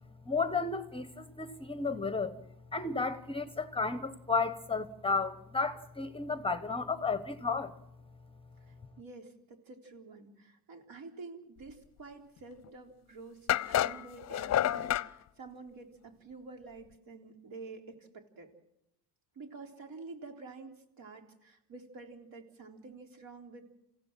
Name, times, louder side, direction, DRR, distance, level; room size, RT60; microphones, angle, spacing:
voice 1, 0.2-2.4 2.7-7.8, left 4 dB, 15° left, 1.0 m, -33 dB
voice 2, 8.7-18.5 19.4-23.7, right 3 dB, 55° right, 3.8 m, -49 dB
sound 1, 12.6-12.7 13.5-15.1, left 12 dB, 40° left, 0.7 m, -29 dB
28.0 x 16.0 x 7.6 m
cardioid pair, 110°, 40 cm